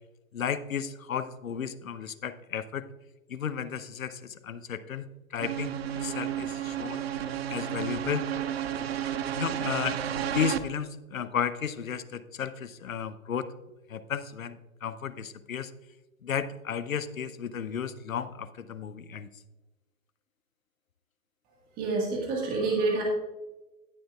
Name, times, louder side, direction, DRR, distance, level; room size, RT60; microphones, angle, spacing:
voice 1, 0.3-2.9 3.3-5.1 5.3-8.2 9.3-10.0 10.3-13.5 13.9-15.7 16.2-19.3, left 7 dB, 70° left, 14 dB, 0.8 m, -33 dB
sound 1, 5.4-10.6, right 10 dB, 45° right, 0.7 m, -32 dB
voice 2, 21.8-23.0, right 3 dB, 20° right, -1 dB, 1.6 m, -27 dB
17.5 x 6.4 x 2.3 m, 1.1 s
figure-of-eight pair, 120°, 42 cm